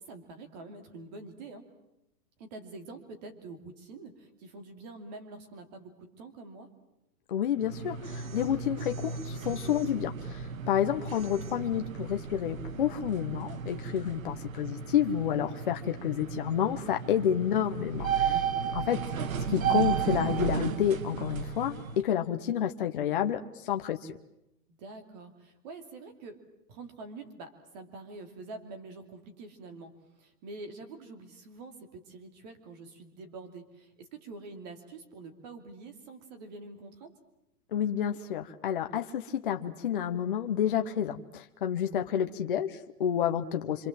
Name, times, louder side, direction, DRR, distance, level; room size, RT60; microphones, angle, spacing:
voice 1, 0.0-1.7 2.4-6.7 17.0-17.2 18.5-18.8 24.7-26.4 26.7-29.9 30.2-37.1, right 3 dB, 25° right, 6 dB, 2.8 m, -46 dB
voice 2, 7.3-18.5 18.7-19.0 19.5-24.2 37.7-43.9, left 9 dB, 35° left, 5 dB, 1.0 m, -30 dB
sound 1, 7.6-22.0, right 7 dB, 60° right, 1.6 m, -34 dB
26.5 x 26.0 x 7.6 m, 0.86 s
hypercardioid pair, 175°, 47 cm